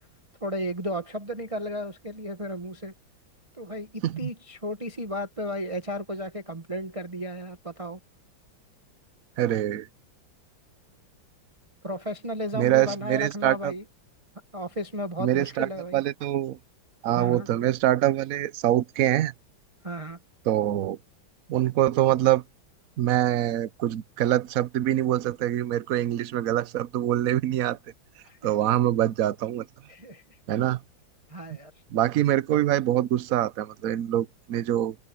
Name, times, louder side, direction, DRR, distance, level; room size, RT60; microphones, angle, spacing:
voice 1, 0.4-2.9 3.6-8.0 11.8-13.8 14.5-16.0 17.1-17.5 19.8-20.2 28.2-28.5 29.9-30.2 31.3-31.7, equal, 20° right, 1.3 m, -34 dB
voice 2, 9.4-9.9 12.5-13.7 15.2-16.6 17.0-19.3 20.5-21.0 21.5-22.4 23.0-27.8 28.4-29.7 30.5-30.8 31.9-35.0, right 13 dB, 60° right, 0.9 m, -24 dB
omnidirectional pair, 2.2 m